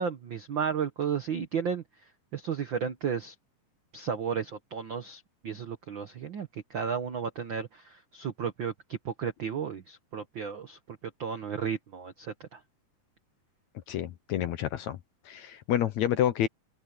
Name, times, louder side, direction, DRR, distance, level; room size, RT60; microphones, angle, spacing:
voice 1, 0.0-1.8 2.3-3.3 3.9-12.6, right 7 dB, 85° right, 1.0 m, -33 dB
voice 2, 13.9-15.0 15.3-16.5, left 11 dB, 70° left, 1.9 m, -28 dB
open air
omnidirectional pair, 4.1 m